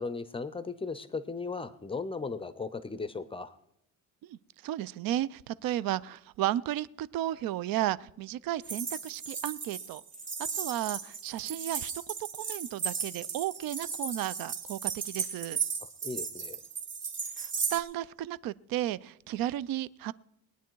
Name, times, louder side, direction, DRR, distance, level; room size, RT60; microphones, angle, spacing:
voice 1, 0.0-3.5 16.0-16.6, left 4 dB, 15° left, 14 dB, 0.4 m, -36 dB
voice 2, 4.6-10.0 10.6-11.9 12.4-15.6 17.4-20.1, right 13 dB, 80° right, 19 dB, 0.5 m, -33 dB
sound 1, 8.6-17.8, right 6 dB, 35° right, 2.1 m, -36 dB
20.5 x 9.3 x 4.6 m, 0.80 s
cardioid pair, 175°, 34 cm